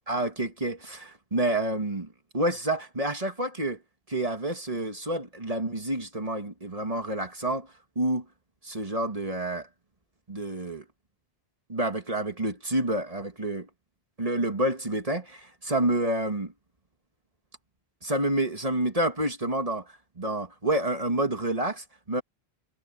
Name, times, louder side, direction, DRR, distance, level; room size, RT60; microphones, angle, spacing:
voice 1, 0.1-2.1 2.3-3.8 4.1-7.7 8.0-8.2 8.6-9.7 10.3-10.8 11.7-13.7 14.2-16.5 18.0-19.8 20.2-22.2, right 1 dB, 35° right, 2.1 m, -28 dB
omnidirectional pair, 1.1 m